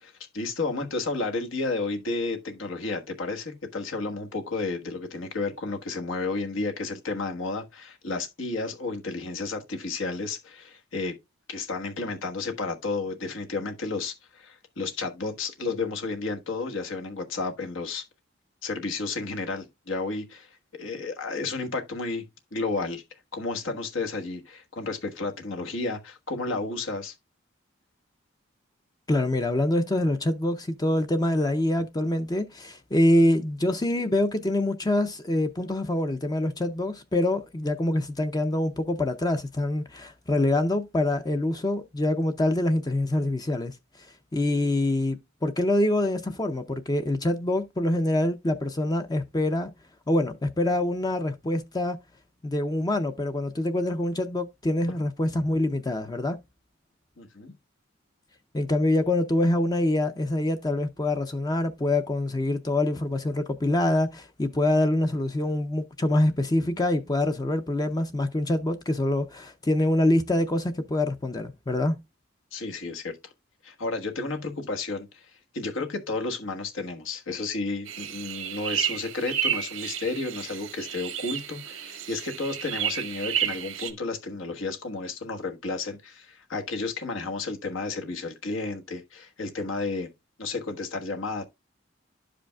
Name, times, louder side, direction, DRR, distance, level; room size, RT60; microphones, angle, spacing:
voice 1, 0.0-11.1 11.5-18.0 18.6-20.5 20.8-22.2 22.5-23.0 23.3-27.1 57.2-57.5 72.5-73.1 73.6-75.3 75.5-90.1 90.4-91.4, left 3 dB, 75° left, 1.3 m, -32 dB
voice 2, 29.1-43.8 44.3-49.7 50.1-52.0 52.4-56.4 58.5-72.0, left 1 dB, 20° left, 0.5 m, -25 dB
sound 1, 77.9-83.9, right 9 dB, 90° right, 1.0 m, -31 dB
12.0 x 5.0 x 2.2 m
head